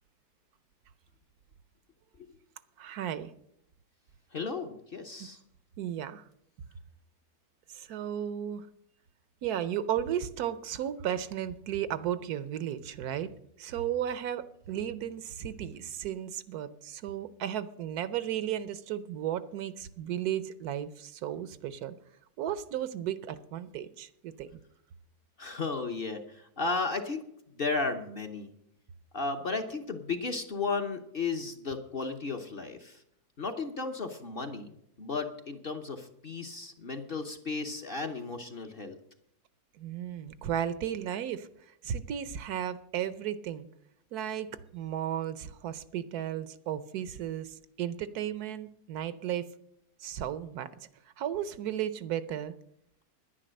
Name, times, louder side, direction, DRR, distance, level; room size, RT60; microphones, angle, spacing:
voice 1, 2.8-3.3 5.2-5.3 5.8-6.2 7.7-8.7 9.4-13.3 13.6-21.9 22.4-24.6 39.8-43.7 44.1-44.5 44.7-49.5 50.0-50.7 51.2-52.5, right 10 dB, 75° right, 15 dB, 1.1 m, -34 dB
voice 2, 4.3-5.4 25.4-27.2 27.6-28.5 29.1-33.0 33.4-34.7 35.0-39.0, left 4 dB, 40° left, 5 dB, 0.9 m, -34 dB
10.5 x 10.0 x 6.4 m, 0.74 s
omnidirectional pair, 1.7 m